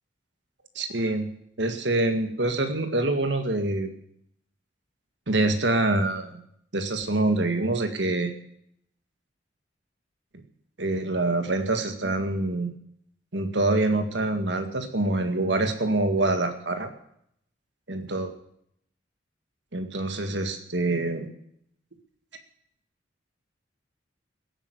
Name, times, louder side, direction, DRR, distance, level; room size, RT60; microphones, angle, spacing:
voice 1, 0.8-1.3 1.6-3.9 5.3-6.4 6.7-8.3 10.8-12.7 13.3-16.9 17.9-18.3 19.7-21.3, right 2 dB, 70° right, 7 dB, 1.9 m, -25 dB
16.5 x 9.2 x 8.1 m, 0.69 s
head